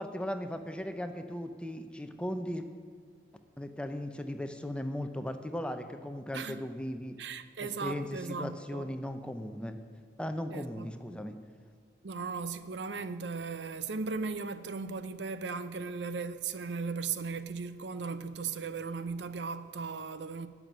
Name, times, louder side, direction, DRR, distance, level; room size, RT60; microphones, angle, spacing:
voice 1, 0.0-2.6 3.6-7.1 7.6-9.8 10.2-11.4, left 1 dB, 5° left, 0.6 m, -37 dB
voice 2, 7.2-8.9 10.5-10.9 12.0-20.5, right 4 dB, 90° right, 0.6 m, -37 dB
11.5 x 6.1 x 9.3 m
head